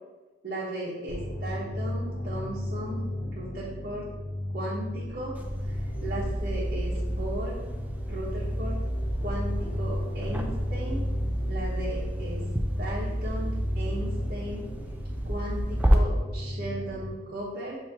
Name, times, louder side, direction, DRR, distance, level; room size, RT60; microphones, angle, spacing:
voice 1, 0.4-4.0 4.5-5.3 5.6-5.7 6.0-7.6 8.1-8.8 9.2-11.0 11.5-12.4 12.8-14.7 15.2-17.8, right 1 dB, 55° right, -9 dB, 1.0 m, -36 dB
sound 1, 1.1-17.1, left 1 dB, 55° left, 0.6 m, -35 dB
sound 2, 5.4-15.9, equal, 10° right, 0.3 m, -30 dB
6.5 x 2.8 x 2.9 m, 1.2 s
head